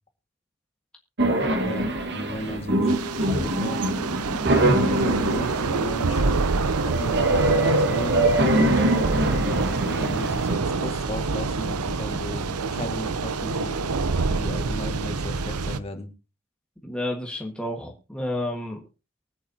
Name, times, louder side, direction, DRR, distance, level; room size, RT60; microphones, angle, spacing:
sound 1, 1.2-10.6, right 1 dB, 50° right, 1.8 m, -24 dB
voice 1, 1.6-2.9 3.2-3.8 4.4-6.2 6.8-8.3 9.1-13.8 14.2-16.1, equal, 25° left, 5 dB, 2.0 m, -35 dB
Thunder / Rain, 2.9-15.8, right 4 dB, 90° right, 0.8 m, -26 dB
voice 2, 8.5-9.0 16.8-18.8, left 1 dB, 5° left, 0 dB, 1.6 m, -31 dB
23.5 x 8.5 x 2.9 m, 0.29 s
head